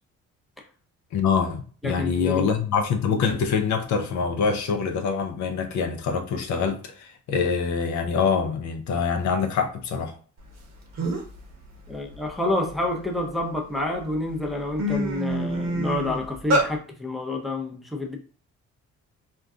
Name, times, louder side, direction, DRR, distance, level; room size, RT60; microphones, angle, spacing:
voice 1, 1.1-10.2, left 5 dB, 70° left, 0.6 m, -25 dB
voice 2, 1.8-2.5 11.9-18.2, left 2 dB, ahead, 0.6 m, -28 dB
sound 1, 10.6-10.7 11.0-11.4 11.9-13.4 14.0-14.2 14.5-16.7, right 1 dB, 60° right, 0.9 m, -26 dB
2.4 x 2.2 x 3.6 m
cardioid pair, 90°, 30 cm